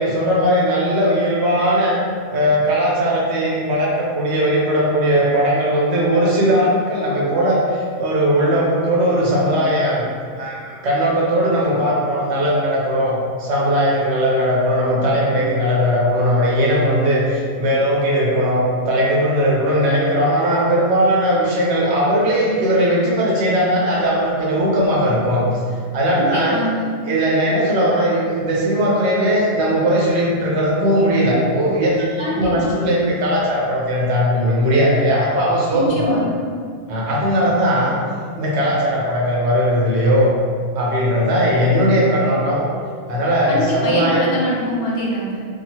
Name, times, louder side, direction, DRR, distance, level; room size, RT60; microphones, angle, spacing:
voice 1, 0.0-2.0 2.3-10.1 10.4-25.4 25.7-26.6 27.1-36.2 36.9-37.9 38.4-40.3 40.7-42.7 43.1-44.2, equal, 75° right, -4 dB, 0.9 m, -18 dB
voice 2, 26.1-26.9 32.2-32.7 35.7-36.4 43.5-45.5, equal, 65° left, -4 dB, 0.8 m, -24 dB
2.8 x 2.3 x 2.8 m, 2.1 s
omnidirectional pair, 1.2 m